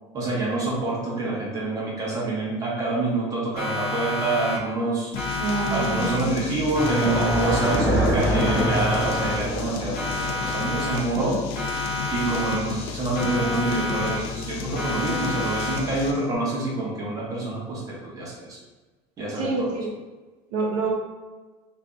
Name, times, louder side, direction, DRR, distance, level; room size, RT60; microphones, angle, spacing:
voice 1, 0.1-5.1 5.7-11.4 12.1-18.6 19.2-19.7, right 2 dB, 25° right, -4 dB, 0.8 m, -27 dB
Siren, 3.6-4.9 5.2-6.5 6.8-8.1 8.4-9.7 10.0-11.3 11.6-12.9 13.2-14.5 14.8-16.1, left 2 dB, 45° left, 1.3 m, -30 dB
sound 1, 5.1-16.3, left 8 dB, 75° left, 0.4 m, -34 dB
voice 2, 5.4-6.2 15.0-15.3 19.4-19.9 20.5-20.9, right 3 dB, 60° right, -1 dB, 0.7 m, -27 dB
sound 2, 6.7-11.8, right 1 dB, ahead, 0.6 m, -26 dB
2.7 x 2.6 x 3.4 m, 1.2 s
cardioid pair, 170°, 13 cm